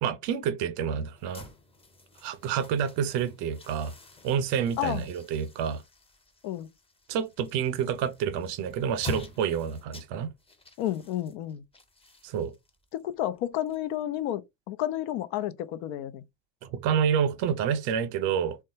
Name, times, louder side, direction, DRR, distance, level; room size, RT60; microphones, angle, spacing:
voice 1, 0.0-1.5 2.2-3.9 4.2-5.8 7.1-10.3 12.2-12.5 16.6-18.6, right 8 dB, 55° right, 0.8 m, -28 dB
sound 1, 1.2-14.2, left 2 dB, 10° left, 0.8 m, -47 dB
voice 2, 10.8-11.6 12.9-16.2, left 12 dB, 60° left, 0.6 m, -31 dB
3.4 x 2.3 x 2.7 m
hypercardioid pair, 70°, 48 cm